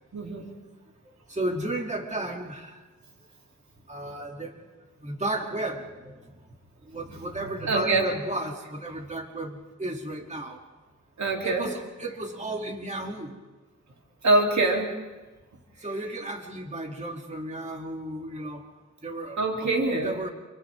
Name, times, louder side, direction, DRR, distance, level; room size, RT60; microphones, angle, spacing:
voice 1, 0.1-0.5 7.7-8.0 11.2-11.7 14.2-14.9 19.4-20.2, right 2 dB, 70° right, 0 dB, 3.5 m, -24 dB
voice 2, 1.3-2.8 3.9-4.7 5.0-6.4 6.8-10.6 11.4-13.4 15.8-18.6 19.0-20.3, right 1 dB, 25° right, 1 dB, 2.9 m, -34 dB
29.5 x 27.5 x 3.7 m, 1.2 s
wide cardioid pair, 80°, 29 cm